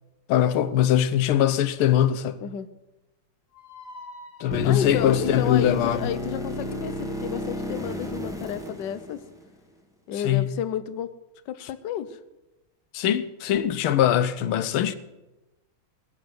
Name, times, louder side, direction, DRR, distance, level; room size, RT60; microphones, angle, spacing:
voice 1, 0.3-2.4 4.4-6.1 10.2-10.6 11.6-11.7 12.9-15.0, left 11 dB, 85° left, 1.6 m, -22 dB
sound 1, 3.5-6.7, left 2 dB, 40° left, 2.4 m, -47 dB
sound 2, 4.5-9.6 13.6-13.7, equal, ahead, 1.8 m, -33 dB
voice 2, 4.6-9.2 10.1-11.1 11.5-12.2, left 9 dB, 65° left, 1.4 m, -31 dB
19.5 x 7.6 x 7.8 m
omnidirectional pair, 2.3 m